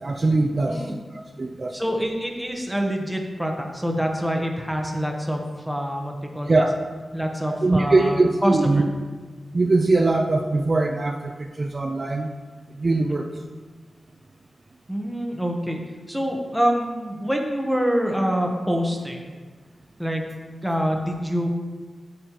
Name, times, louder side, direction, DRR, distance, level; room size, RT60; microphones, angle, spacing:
voice 1, 0.0-1.8 6.5-6.8 7.6-8.8 9.5-12.3 12.7-13.3, right 2 dB, 35° right, 3 dB, 0.4 m, -21 dB
voice 2, 1.7-5.4 5.7-6.6 7.1-8.9 14.9-15.8 16.1-19.3 20.0-20.2 20.6-21.5, equal, ahead, 1 dB, 0.9 m, -26 dB
8.3 x 7.5 x 2.9 m, 1.4 s
wide cardioid pair, 130°, 0 cm